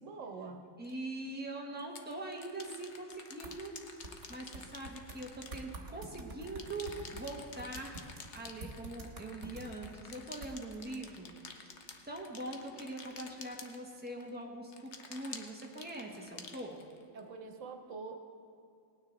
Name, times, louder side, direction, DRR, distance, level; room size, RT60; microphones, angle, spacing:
voice 1, 0.0-0.7 17.1-18.2, right 4 dB, 90° right, 5 dB, 1.4 m, -45 dB
sound 1, 0.8-0.9 1.8-6.2 6.4-14.3 14.7-17.2, left 5 dB, 65° left, 1.2 m, -50 dB
voice 2, 0.8-3.7 4.3-8.0 8.3-16.8, right 2 dB, 10° right, -1 dB, 1.4 m, -43 dB
sound 2, 3.4-3.5 4.0-5.2 5.5-9.9 10.4-10.8, right 2 dB, 70° right, 1.7 m, -47 dB
19.0 x 9.4 x 4.0 m, 2.6 s
omnidirectional pair, 1.3 m